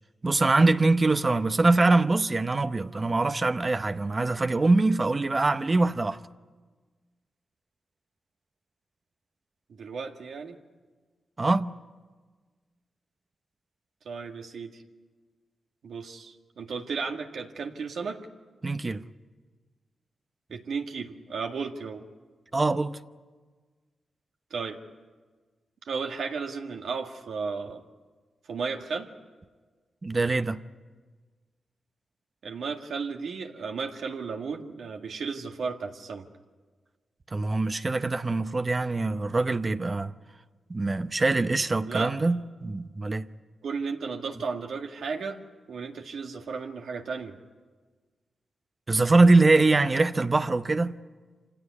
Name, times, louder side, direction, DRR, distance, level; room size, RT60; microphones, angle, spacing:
voice 1, 0.2-6.2 11.4-11.7 18.6-19.0 22.5-23.0 30.0-30.6 37.3-40.1 40.7-43.3 48.9-51.0, right 3 dB, 35° right, 0.8 m, -23 dB
voice 2, 9.7-10.6 14.1-14.8 15.8-18.2 20.5-22.0 24.5-24.8 25.8-27.8 28.5-29.1 32.4-36.3 41.9-42.1 43.6-45.4 45.7-47.4, right 5 dB, 80° right, 1.9 m, -34 dB
26.0 x 17.0 x 9.5 m
cardioid pair, 75°, 0 cm